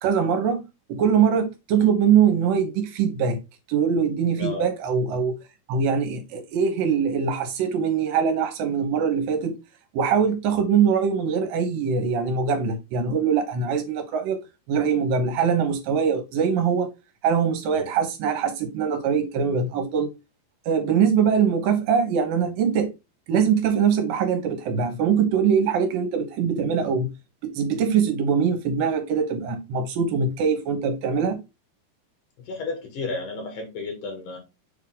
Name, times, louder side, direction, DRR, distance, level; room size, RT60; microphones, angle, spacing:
voice 1, 0.0-3.4 3.7-5.4 5.7-9.6 9.9-14.4 14.7-16.9 17.2-20.1 20.7-22.9 23.3-27.1 27.5-31.4, right 6 dB, 75° right, 2.6 m, -22 dB
voice 2, 4.4-4.7 17.7-18.0 32.4-34.4, left 3 dB, 60° left, 3.4 m, -33 dB
7.2 x 3.6 x 3.7 m
omnidirectional pair, 4.2 m